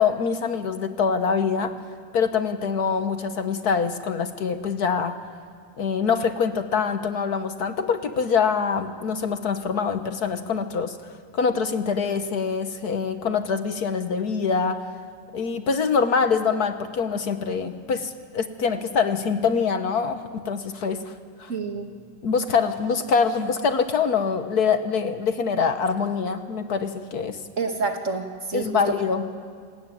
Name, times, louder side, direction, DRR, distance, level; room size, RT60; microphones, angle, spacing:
voice 1, 0.0-1.7 2.1-5.1 5.8-11.0 11.3-14.8 15.3-21.1 21.4-21.5 22.2-27.4 28.5-29.2, left 5 dB, 60° left, 9 dB, 1.6 m, -24 dB
voice 2, 21.5-21.9 27.6-28.9, right 4 dB, 45° right, 4 dB, 2.2 m, -28 dB
27.0 x 20.0 x 9.2 m, 2.1 s
omnidirectional pair, 2.0 m